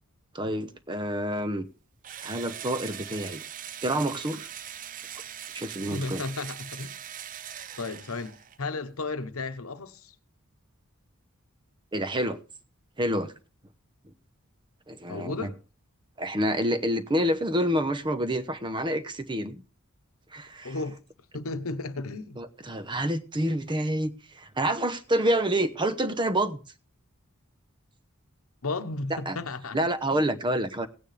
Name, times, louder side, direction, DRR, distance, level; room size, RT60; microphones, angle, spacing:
voice 1, 0.3-1.7 2.2-3.4 3.8-4.5 5.5-6.2 11.9-12.4 13.0-13.3 14.0-14.1 14.9-15.5 16.2-19.6 20.3-20.8 22.4-26.6 29.1-29.4 29.7-30.9, right 1 dB, 20° right, 0.8 m, -28 dB
Engine / Drill, 2.0-8.6, right 10 dB, 40° right, 0.5 m, -41 dB
voice 2, 5.9-6.9 7.8-10.1 15.1-15.6 20.6-21.0 21.3-22.4 28.6-29.8 30.1-30.2, left 3 dB, 80° left, 1.0 m, -34 dB
17.5 x 9.1 x 3.3 m
head